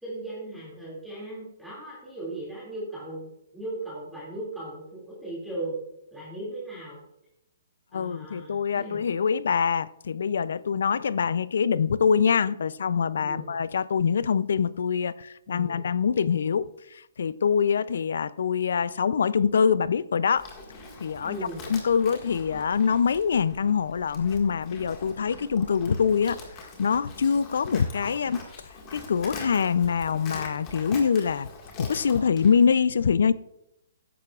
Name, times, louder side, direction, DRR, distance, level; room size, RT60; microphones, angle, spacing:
voice 1, 0.0-5.8 6.1-7.0 7.9-9.0 13.1-13.6 15.5-15.8 21.3-21.7, right 1 dB, ahead, 2.4 m, -37 dB
voice 2, 7.9-20.5 21.0-21.4 21.7-26.4 26.8-28.5 28.9-31.5 31.8-33.3, left 6 dB, 70° left, 0.4 m, -24 dB
Livestock farm animals working animals, 20.3-32.7, left 3 dB, 20° left, 1.8 m, -43 dB
14.0 x 11.0 x 2.4 m
hypercardioid pair, 175°, 0 cm